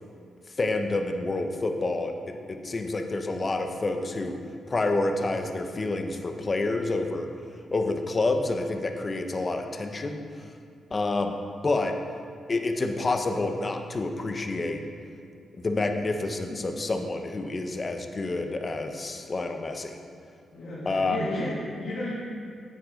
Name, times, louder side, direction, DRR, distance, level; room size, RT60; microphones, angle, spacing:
voice 1, 0.6-4.4 4.7-7.3 7.7-10.2 10.9-11.3 11.6-11.9 12.5-14.8 15.5-20.0 20.8-21.2, left 2 dB, 35° left, 5 dB, 0.9 m, -28 dB
voice 2, 20.5-22.1, left 1 dB, 70° left, -10 dB, 2.2 m, -33 dB
9.5 x 9.4 x 3.8 m, 2.4 s
cardioid pair, 85°, 0 cm